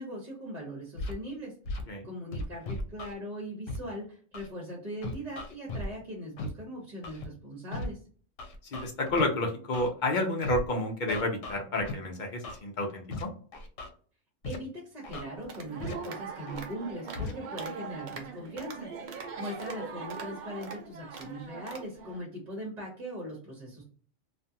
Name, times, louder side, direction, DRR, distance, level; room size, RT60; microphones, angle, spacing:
voice 1, 0.0-8.0 14.4-23.8, equal, 40° right, -4 dB, 1.0 m, -40 dB
Scratching (performance technique), 1.0-1.1 1.6-1.8 2.3-3.1 3.7-3.8 4.3-4.5 5.0-5.9 6.4-6.5 7.0-7.3 7.7-7.9 8.4-9.2 9.7-9.9 10.4-10.6 11.1-11.9 12.4-12.6 13.1-13.2 13.5-13.9 14.4-14.6 15.0-15.2 15.8-15.9 16.5-16.6 17.1-17.3, left 2 dB, 85° left, 1.0 m, -36 dB
voice 2, 8.7-13.3, left 2 dB, 50° left, 2 dB, 0.6 m, -30 dB
sound 1, 15.4-22.2, right 5 dB, 55° right, 0.6 m, -41 dB
2.5 x 2.3 x 2.7 m, 0.43 s
omnidirectional pair, 1.3 m